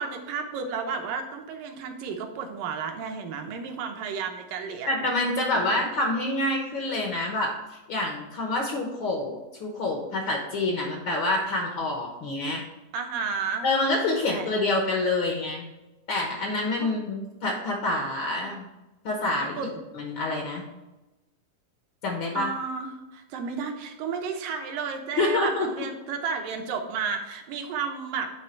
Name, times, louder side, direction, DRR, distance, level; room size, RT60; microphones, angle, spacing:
voice 1, 0.0-4.9 5.5-5.9 12.9-13.7 14.2-14.5 16.8-16.9 19.4-19.8 22.3-28.3, right 5 dB, 80° right, 4 dB, 2.5 m, -32 dB
voice 2, 4.9-12.6 13.6-15.7 16.1-18.7 19.0-19.6 19.9-20.6 22.0-22.5 25.2-25.7, left 2 dB, 75° left, 0 dB, 1.2 m, -27 dB
10.0 x 3.4 x 4.5 m, 1.0 s
omnidirectional pair, 3.9 m